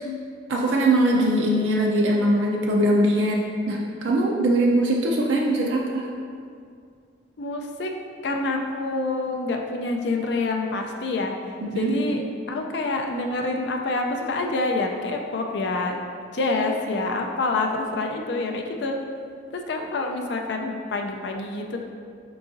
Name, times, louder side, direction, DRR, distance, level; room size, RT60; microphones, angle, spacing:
voice 1, 0.5-3.4 3.7-6.1 11.6-11.9, right 1 dB, 80° right, -2 dB, 0.5 m, -21 dB
voice 2, 7.4-7.9 8.2-11.3 11.7-16.0 16.3-19.0 19.5-21.8, left 2 dB, 65° left, 2 dB, 0.4 m, -27 dB
4.7 x 3.9 x 2.6 m, 2.2 s
head